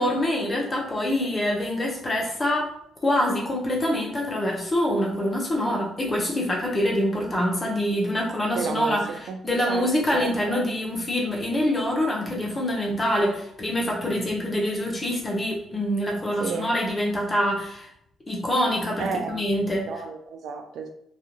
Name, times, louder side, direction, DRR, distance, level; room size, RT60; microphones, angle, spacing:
voice 1, 0.0-2.7 3.0-9.1 9.4-17.9 18.3-19.9, left 1 dB, 25° left, 0.9 m, -25 dB
voice 2, 8.6-10.7 16.4-16.7 19.0-19.4 19.9-20.9, right 5 dB, 75° right, 0.3 m, -32 dB
2.4 x 2.4 x 2.9 m
cardioid pair, 90°, 0 cm